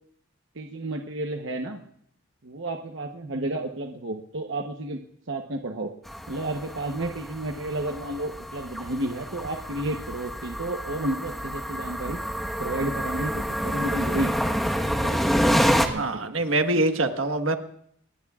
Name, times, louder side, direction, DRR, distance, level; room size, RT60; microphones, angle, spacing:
voice 1, 0.5-1.8 2.4-5.0 5.3-5.9 6.3-12.2 12.6-14.3 15.0-15.6 15.8-16.3, right 1 dB, 65° right, 3 dB, 1.0 m, -31 dB
sound 1, 6.1-15.9, equal, ahead, 1.3 m, -28 dB
voice 2, 15.9-17.6, right 2 dB, 85° right, 6 dB, 1.5 m, -24 dB
28.5 x 20.0 x 2.5 m, 0.68 s
head